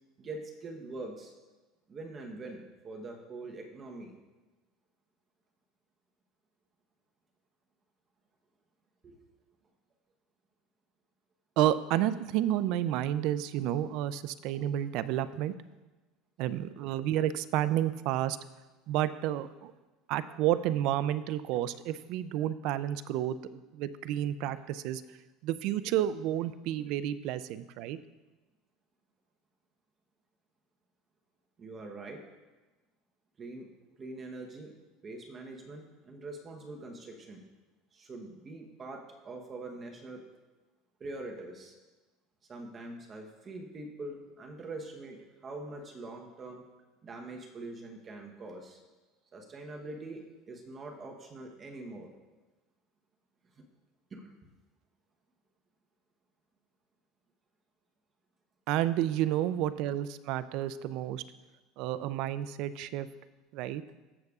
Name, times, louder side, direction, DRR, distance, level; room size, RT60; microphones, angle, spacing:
voice 1, 0.2-1.3 1.9-4.2 9.0-9.2 31.6-32.2 33.4-33.7 34.0-34.7 35.0-37.4 37.9-40.2 41.0-41.7 42.5-46.6 47.0-48.8 49.3-52.1 54.1-54.3, right 2 dB, 25° right, 2 dB, 0.9 m, -43 dB
voice 2, 11.6-15.5 16.4-18.4 18.9-19.7 20.1-25.0 25.4-28.0 58.7-61.2 61.8-63.1 63.5-63.8, right 12 dB, 60° right, 14 dB, 0.4 m, -30 dB
14.5 x 6.6 x 2.4 m, 1.1 s
supercardioid pair, 135°, 0 cm